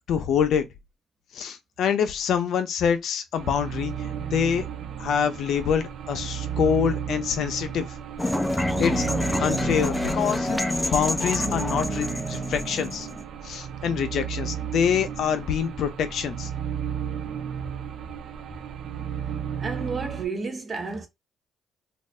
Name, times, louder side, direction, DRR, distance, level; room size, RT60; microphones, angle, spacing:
voice 1, 0.1-0.6 1.3-4.6 5.0-7.9 8.8-9.0 9.4-13.1 13.4-16.5, left 7 dB, 70° left, 0.6 m, -25 dB
sound 1, 3.3-20.3, right 8 dB, 70° right, 0.4 m, -33 dB
sound 2, 8.2-13.2, left 1 dB, 10° left, 0.5 m, -27 dB
voice 2, 19.6-21.1, right 4 dB, 35° right, 1.0 m, -31 dB
2.6 x 2.4 x 3.2 m
cardioid pair, 90°, 0 cm